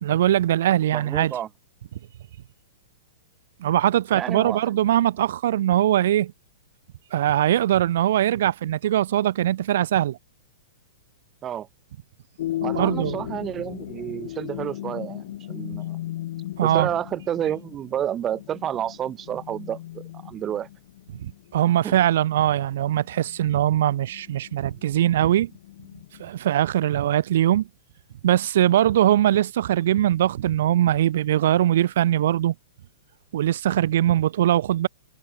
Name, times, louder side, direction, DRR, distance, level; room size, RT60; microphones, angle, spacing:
voice 1, 0.0-1.3 3.6-6.3 7.1-10.2 12.6-13.2 16.6-16.9 21.2-25.5 26.2-27.7 28.2-32.5 33.3-34.9, right 12 dB, 65° right, 1.3 m, -21 dB
voice 2, 0.9-1.5 4.1-4.8 11.4-11.7 12.6-16.0 16.6-20.7 21.8-22.0, right 10 dB, 25° right, 1.3 m, -30 dB
sound 1, 12.4-26.3, left 14 dB, 60° left, 3.0 m, -36 dB
hypercardioid pair, 120°, 0 cm